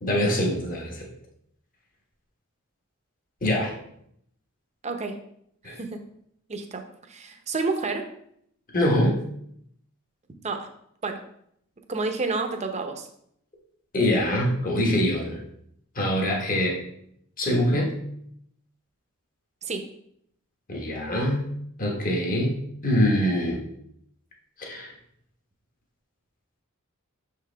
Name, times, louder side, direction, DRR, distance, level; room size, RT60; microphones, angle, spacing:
voice 1, 0.0-1.1 3.4-3.7 5.6-5.8 8.7-9.2 13.9-15.4 15.9-16.8 17.4-17.9 20.7-21.5 21.8-22.6 22.8-23.6 24.6-24.9, left 1 dB, 40° left, -1 dB, 1.4 m, -24 dB
voice 2, 4.8-5.2 5.6-6.0 6.5-6.8 7.1-8.0 10.4-10.7 11.0-11.2 11.9-13.1 19.6-19.8, right 3 dB, 30° right, 5 dB, 0.7 m, -29 dB
6.5 x 4.8 x 3.4 m, 0.71 s
head